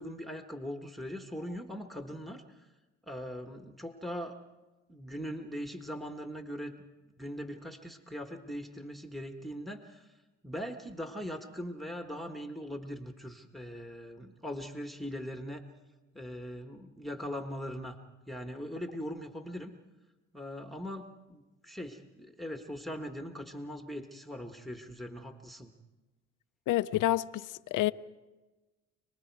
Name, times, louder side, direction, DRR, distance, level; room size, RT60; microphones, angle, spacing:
voice 1, 0.0-2.7 3.1-4.4 4.9-6.9 7.2-10.1 10.4-15.7 16.1-18.0 18.3-19.7 20.3-25.7, equal, ahead, 1.5 m, -40 dB
voice 2, 26.7-27.9, left 15 dB, 85° left, 0.7 m, -28 dB
28.5 x 20.0 x 4.7 m
cardioid pair, 90°, 30 cm